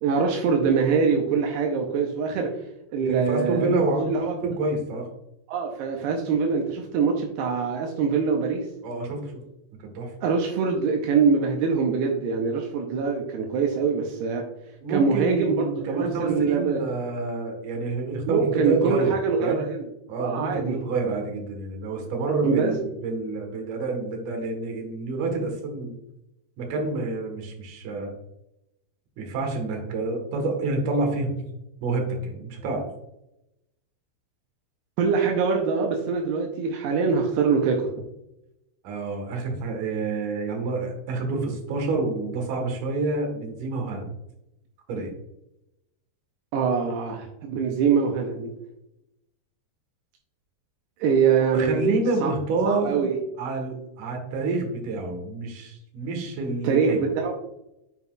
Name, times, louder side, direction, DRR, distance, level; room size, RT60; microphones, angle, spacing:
voice 1, 0.0-2.5 2.9-3.7 4.1-4.4 5.5-8.7 10.2-14.4 14.9-15.6 15.9-16.8 18.3-19.8 20.2-20.8 22.4-22.8 35.0-37.9 46.5-48.5 51.0-51.9 52.2-52.3 52.7-53.2 56.6-57.3, right 5 dB, 85° right, 1 dB, 2.3 m, -23 dB
voice 2, 3.0-4.1 4.4-5.0 8.8-9.3 9.8-10.1 14.8-19.1 19.4-19.6 20.1-26.0 26.6-28.1 29.2-31.5 31.8-32.8 38.8-44.1 44.9-45.1 51.5-53.1 53.4-57.0, right 3 dB, 60° right, 2 dB, 2.2 m, -28 dB
7.7 x 5.4 x 2.3 m, 0.85 s
omnidirectional pair, 5.4 m